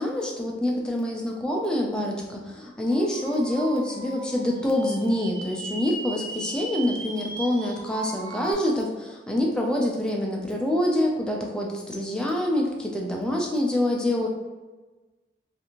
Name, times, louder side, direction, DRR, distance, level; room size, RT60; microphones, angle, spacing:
voice 1, 0.0-14.3, left 1 dB, 5° left, -1 dB, 0.3 m, -26 dB
sound 1, 2.9-8.5, right 2 dB, 70° right, 0.5 m, -38 dB
2.6 x 2.5 x 2.8 m, 1.2 s
head